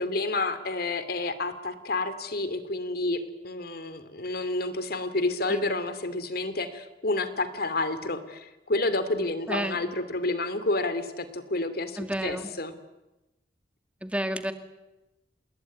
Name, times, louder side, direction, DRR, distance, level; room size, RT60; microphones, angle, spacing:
voice 1, 0.0-12.7, left 2 dB, 60° left, 12 dB, 2.7 m, -29 dB
voice 2, 9.5-9.8 12.0-12.5 14.0-14.5, right 1 dB, 5° right, 8 dB, 2.1 m, -30 dB
28.0 x 20.5 x 9.5 m, 0.99 s
head